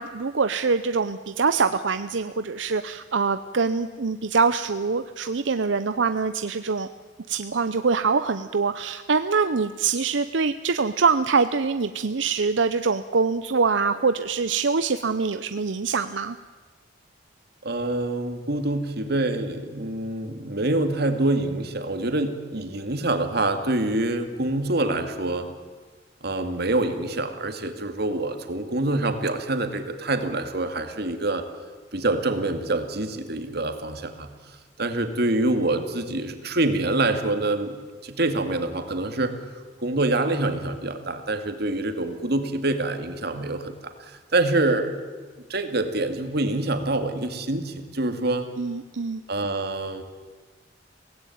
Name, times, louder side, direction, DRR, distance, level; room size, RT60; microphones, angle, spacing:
voice 1, 0.0-6.9 7.3-16.4 48.6-49.2, right 4 dB, 85° right, 10 dB, 0.7 m, -24 dB
voice 2, 17.6-25.5 26.2-31.4 31.9-39.3 39.8-44.9 45.5-48.5 49.3-50.0, right 2 dB, 60° right, 7 dB, 2.3 m, -26 dB
23.5 x 17.5 x 9.4 m, 1.4 s
head